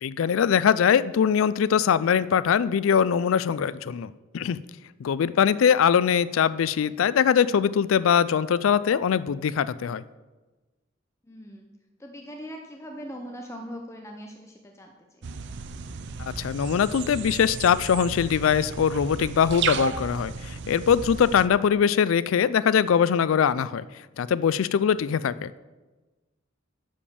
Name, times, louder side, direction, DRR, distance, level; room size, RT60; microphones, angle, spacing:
voice 1, 0.0-4.6 5.0-10.0 16.2-23.9 24.2-25.5, left 7 dB, 85° left, 16 dB, 0.4 m, -22 dB
voice 2, 5.3-5.7 11.3-11.7 12.0-15.2, equal, 15° left, 2 dB, 0.7 m, -41 dB
sound 1, 15.2-21.5, right 6 dB, 60° right, 0.5 m, -34 dB
10.5 x 5.1 x 7.0 m, 1.2 s
head